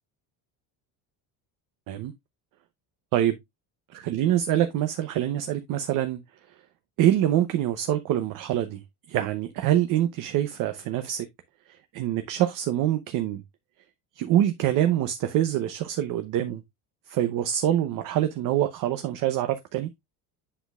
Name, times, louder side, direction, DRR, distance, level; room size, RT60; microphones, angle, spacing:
voice 1, 3.9-6.2 7.0-8.8 9.1-11.3 11.7-13.4 14.2-16.6 17.1-19.9, right 12 dB, 60° right, 0.8 m, -25 dB
7.8 x 6.1 x 2.3 m
cardioid pair, 165°, 37 cm